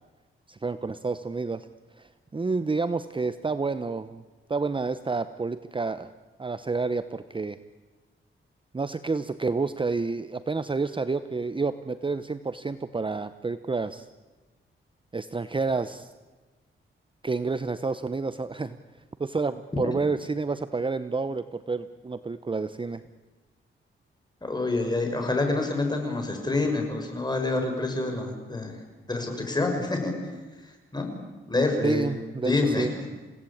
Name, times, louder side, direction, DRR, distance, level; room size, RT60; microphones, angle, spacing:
voice 1, 0.5-1.7 1.9-4.2 4.5-6.1 6.4-7.6 8.7-14.1 15.1-16.1 17.2-18.8 19.2-23.0 31.8-32.9, right 4 dB, 25° right, 12 dB, 0.8 m, -29 dB
voice 2, 24.4-28.7 29.1-30.1 30.9-31.1 31.5-33.0, left 2 dB, 20° left, 3 dB, 6.3 m, -27 dB
29.0 x 17.5 x 8.7 m, 1.3 s
cardioid pair, 95°, 21 cm